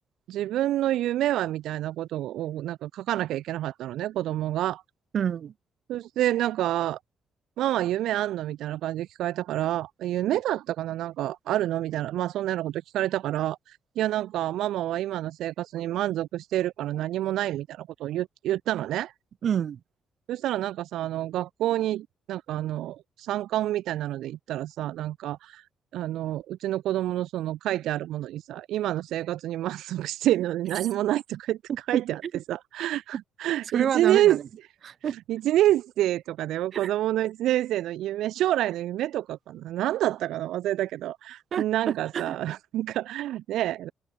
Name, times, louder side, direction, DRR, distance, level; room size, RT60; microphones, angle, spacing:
voice 1, 0.3-4.8 5.9-7.0 7.6-19.1 20.3-25.7 25.9-31.6 31.9-32.2 32.5-34.4 35.3-43.9, right 13 dB, 85° right, 3.7 m, -28 dB
voice 2, 5.1-5.5 19.4-19.8 32.2-32.3 33.7-34.4 34.8-35.1 36.7-36.9 41.5-41.6 42.1-42.4, right 8 dB, 60° right, 6.8 m, -27 dB
open air
cardioid pair, 90°, 0 cm